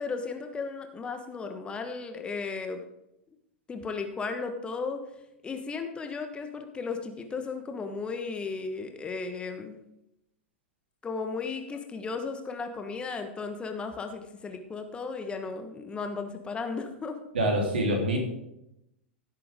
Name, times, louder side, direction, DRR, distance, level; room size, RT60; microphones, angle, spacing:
voice 1, 0.0-2.8 3.7-5.0 5.4-9.8 11.0-17.2, left 4 dB, 15° left, 6 dB, 1.3 m, -35 dB
voice 2, 17.3-18.2, right 1 dB, 65° right, 1 dB, 3.2 m, -25 dB
16.5 x 8.5 x 3.7 m, 0.84 s
figure-of-eight pair, 90°, 6 cm